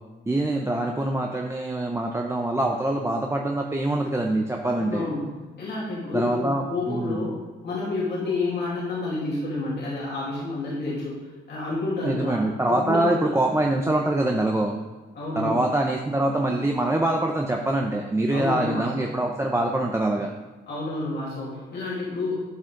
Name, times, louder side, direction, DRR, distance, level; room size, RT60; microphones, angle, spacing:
voice 1, 0.3-5.1 6.1-7.2 12.0-14.8 15.3-20.3, right 1 dB, 15° right, 1 dB, 0.7 m, -24 dB
voice 2, 4.8-7.4 7.6-11.2 11.5-12.4 12.7-13.3 15.1-15.6 18.3-19.1 20.7-22.4, left 3 dB, 60° left, -6 dB, 2.8 m, -29 dB
11.5 x 5.0 x 3.8 m, 1.3 s
supercardioid pair, 70°, 20 cm